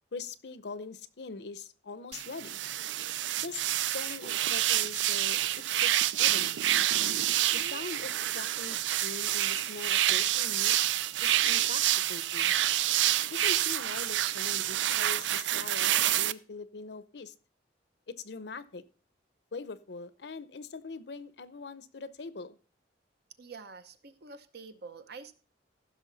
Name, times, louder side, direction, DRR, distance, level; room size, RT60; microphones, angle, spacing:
voice 1, 0.1-2.6 3.4-3.7 3.9-5.4 5.8-6.6 7.5-10.7 11.2-11.8 12.1-12.5 13.3-17.3 18.1-18.8 19.5-22.6, left 4 dB, 65° left, 15 dB, 0.7 m, -42 dB
sound 1, 2.1-16.3, right 12 dB, 85° right, 0.4 m, -28 dB
voice 2, 23.4-25.3, right 4 dB, 60° right, 10 dB, 0.9 m, -47 dB
15.0 x 6.2 x 4.0 m, 0.40 s
head